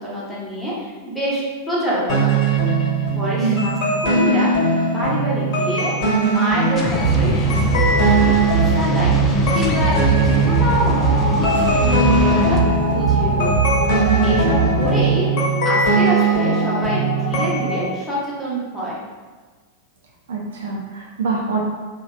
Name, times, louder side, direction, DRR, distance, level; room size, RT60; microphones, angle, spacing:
voice 1, 0.0-2.7 3.1-3.7 4.0-4.7 4.9-5.9 6.2-8.3 8.7-9.2 9.5-9.9 10.2-12.6 12.8-13.7 14.2-15.3 15.6-19.0, equal, 5° left, -8 dB, 0.9 m, -26 dB
sound 1, 2.1-17.8, right 3 dB, 45° left, 1.2 m, -20 dB
sound 2, 6.7-12.6, left 2 dB, 25° left, 0.3 m, -25 dB
sound 3, 7.0-15.1, right 4 dB, 85° left, 0.5 m, -21 dB
voice 2, 20.3-21.6, right 3 dB, 65° right, -2 dB, 0.4 m, -24 dB
3.2 x 2.2 x 2.3 m, 1.4 s
figure-of-eight pair, 90°, 0 cm